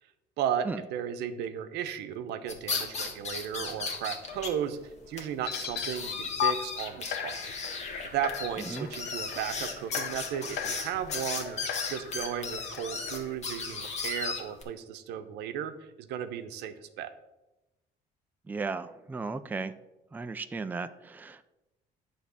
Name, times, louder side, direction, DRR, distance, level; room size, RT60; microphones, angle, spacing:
voice 1, 0.4-4.8 5.1-7.4 8.1-11.6 11.9-17.1, right 9 dB, 85° right, 10 dB, 0.8 m, -35 dB
sound 1, 2.5-4.5 4.8-4.9 5.2-5.3 5.5-14.6, left 4 dB, 40° left, 1.5 m, -36 dB
sound 2, 5.4-5.9 6.4-6.5 7.1-13.3, left 10 dB, 75° left, 0.7 m, -37 dB
voice 2, 18.5-19.7 20.1-21.4, right 4 dB, 10° right, 10 dB, 0.4 m, -35 dB
9.5 x 3.6 x 6.9 m, 0.99 s
cardioid pair, 110°, 17 cm